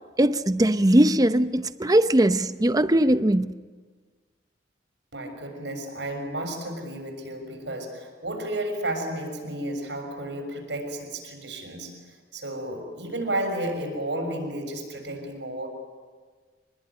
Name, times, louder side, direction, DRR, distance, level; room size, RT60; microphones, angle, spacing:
voice 1, 0.2-3.5, right 1 dB, 20° right, 0.8 m, -20 dB
voice 2, 5.1-15.7, right 1 dB, 75° right, 6.6 m, -32 dB
26.0 x 20.5 x 9.8 m
head